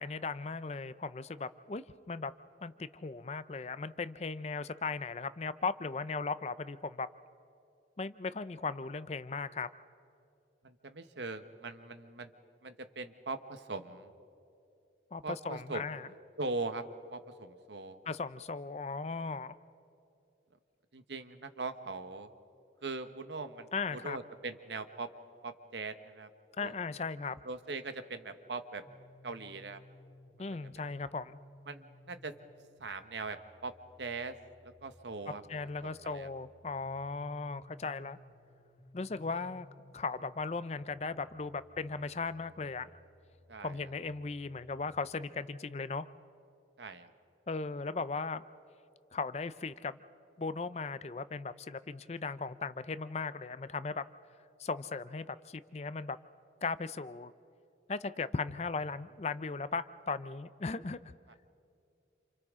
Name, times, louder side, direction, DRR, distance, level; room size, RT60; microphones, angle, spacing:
voice 1, 0.0-2.3 2.6-7.1 8.0-9.7 15.1-16.1 18.1-19.5 23.7-24.2 26.6-27.4 30.4-31.4 35.3-38.2 38.9-39.7 39.9-42.9 43.6-46.1 47.5-48.4 49.1-50.0 50.4-54.0 54.6-56.2 56.6-57.3 57.9-61.0, left 4 dB, 35° left, 14 dB, 0.5 m, -37 dB
voice 2, 10.6-12.3 12.6-14.1 15.2-15.8 16.4-16.8 17.1-18.0 20.9-22.3 22.8-25.1 25.4-26.3 26.6-26.7 27.4-28.8 29.2-29.8 31.7-32.3 32.8-33.7 34.0-34.4 34.6-35.4 35.8-36.3 43.5-43.8 46.8-47.1, right 3 dB, 75° right, 9 dB, 1.1 m, -40 dB
sound 1, 28.8-44.8, left 1 dB, 65° left, 2.1 m, -60 dB
28.5 x 28.0 x 3.7 m, 2.6 s
head